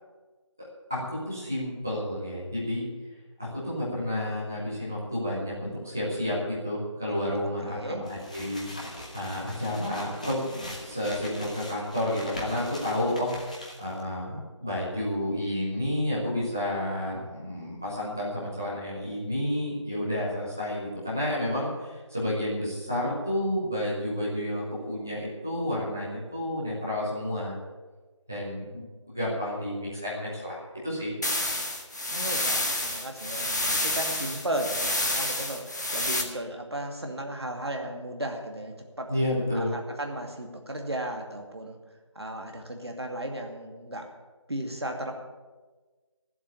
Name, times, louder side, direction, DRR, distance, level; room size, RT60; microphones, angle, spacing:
voice 1, 0.6-2.9 3.4-13.3 13.8-27.6 28.3-31.1 39.1-39.8, left 1 dB, 5° right, -7 dB, 0.7 m, -31 dB
voice 2, 7.6-8.0 32.1-39.1 39.5-41.8 42.1-44.1 44.5-45.1, right 1 dB, 55° right, 3 dB, 2.4 m, -35 dB
sound 1, 8.0-14.0, left 1 dB, 15° left, 1.1 m, -42 dB
sound 2, 31.2-36.2, left 1 dB, 35° left, 1.5 m, -29 dB
13.5 x 7.9 x 8.9 m, 1.3 s
figure-of-eight pair, 170°, 16 cm